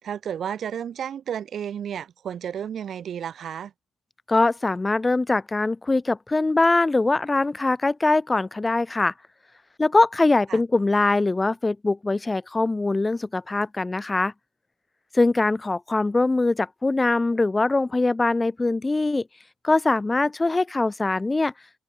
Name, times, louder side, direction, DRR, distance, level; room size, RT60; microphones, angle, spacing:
voice 1, 0.0-3.7 10.5-10.6, right 9 dB, 60° right, 2.6 m, -32 dB
voice 2, 4.3-9.1 9.8-14.3 15.1-19.2 19.6-21.5, left 2 dB, 20° left, 1.8 m, -22 dB
cardioid pair, 90°, 0 cm